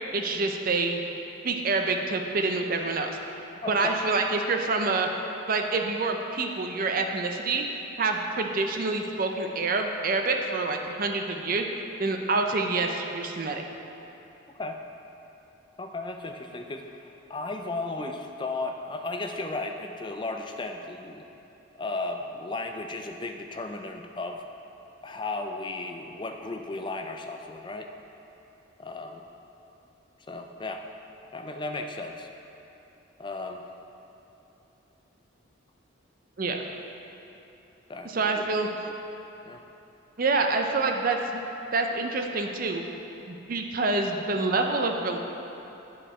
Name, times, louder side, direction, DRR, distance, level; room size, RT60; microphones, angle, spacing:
voice 1, 0.1-1.0 1.4-3.2 3.7-5.1 5.5-7.6 8.0-11.6 12.0-13.6 36.4-36.7 38.0-38.7 40.2-41.2 41.7-42.8 43.3-45.2, right 3 dB, 40° right, 4 dB, 0.5 m, -27 dB
voice 2, 3.6-4.0 14.5-14.8 15.8-21.2 21.8-24.5 25.0-27.9 28.8-29.2 30.3-30.9 31.3-32.3 33.2-33.6 37.9-38.7 39.4-39.6, left 2 dB, 20° left, 4 dB, 0.4 m, -35 dB
8.8 x 5.4 x 4.2 m, 3.0 s
head